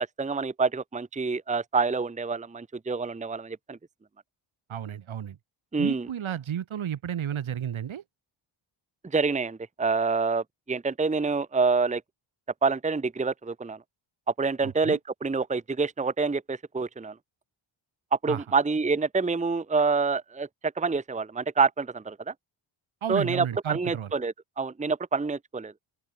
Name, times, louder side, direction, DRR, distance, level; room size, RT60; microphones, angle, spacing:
voice 1, 0.2-3.8 5.7-6.1 9.1-12.0 12.6-13.8 14.4-17.1 18.1-20.5 20.8-22.3 23.1-25.7, right 4 dB, 15° right, 0.9 m, -27 dB
voice 2, 4.7-5.4 5.8-8.0 14.6-15.0 18.3-18.4 23.0-24.1, right 9 dB, 70° right, 3.4 m, -32 dB
open air
wide cardioid pair, 165°, 49 cm